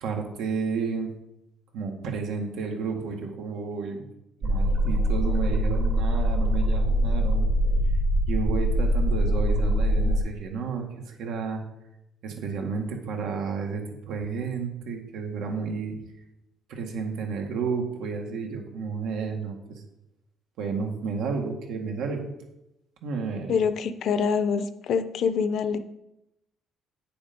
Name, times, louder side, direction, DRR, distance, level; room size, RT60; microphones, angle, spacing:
voice 1, 0.0-1.1 1.7-4.1 4.4-7.5 8.3-11.6 12.2-16.0 16.7-19.8 20.6-22.3 23.0-23.6, right 5 dB, 80° right, 2 dB, 1.8 m, -31 dB
sound 1, 4.4-10.2, equal, 45° right, 1.3 m, -23 dB
voice 2, 23.5-25.8, left 6 dB, 55° left, 12 dB, 0.7 m, -25 dB
9.1 x 7.0 x 5.3 m, 0.87 s
cardioid pair, 160°, 0 cm